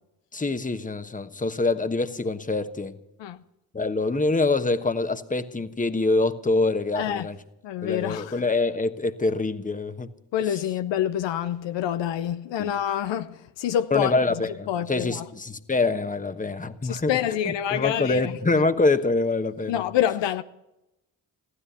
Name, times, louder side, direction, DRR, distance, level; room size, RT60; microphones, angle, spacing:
voice 1, 0.3-3.0 3.7-7.4 7.8-10.1 12.6-12.7 13.9-17.2 17.4-19.8, left 3 dB, 20° left, 1.2 m, -25 dB
voice 2, 6.9-7.3 7.6-8.4 10.3-15.2 16.8-18.3 19.7-20.4, left 10 dB, 75° left, 0.7 m, -27 dB
15.0 x 13.0 x 6.8 m
supercardioid pair, 45°, 44 cm